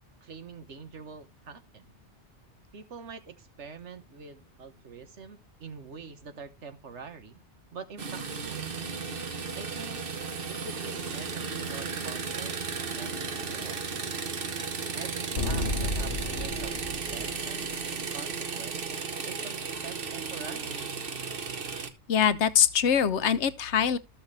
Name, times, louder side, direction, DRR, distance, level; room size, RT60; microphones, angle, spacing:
voice 1, 0.2-1.9 2.7-7.4 7.7-8.7 9.5-10.0 10.5-14.1 14.9-17.7 18.1-18.9 19.2-21.0, right 5 dB, 75° right, 1.5 m, -45 dB
sound 1, 8.0-21.9, right 5 dB, 55° right, 1.3 m, -35 dB
sound 2, 15.4-18.0, left 1 dB, 50° left, 1.2 m, -32 dB
voice 2, 22.1-24.0, left 8 dB, 75° left, 1.1 m, -23 dB
13.5 x 6.4 x 3.3 m
omnidirectional pair, 1.2 m